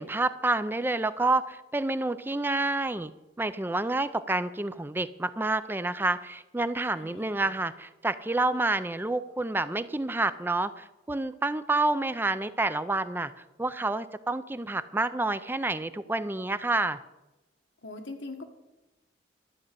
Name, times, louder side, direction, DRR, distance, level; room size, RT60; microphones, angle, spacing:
voice 1, 0.0-3.1 3.4-17.0, right 2 dB, 10° right, 13 dB, 0.4 m, -28 dB
voice 2, 6.9-7.5 17.8-18.5, left 2 dB, 90° left, 5 dB, 1.7 m, -42 dB
12.5 x 6.3 x 9.4 m, 1.0 s
head